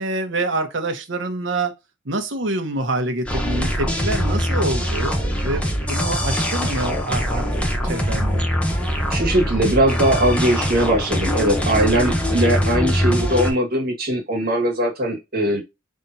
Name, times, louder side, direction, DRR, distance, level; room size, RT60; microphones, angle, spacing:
voice 1, 0.0-1.7 2.0-5.1 5.4-8.4, right 2 dB, 70° right, 1.1 m, -26 dB
sound 1, 3.3-13.5, equal, 5° left, 1.0 m, -22 dB
voice 2, 9.1-15.6, right 1 dB, 55° right, 1.7 m, -20 dB
5.6 x 3.5 x 2.7 m
head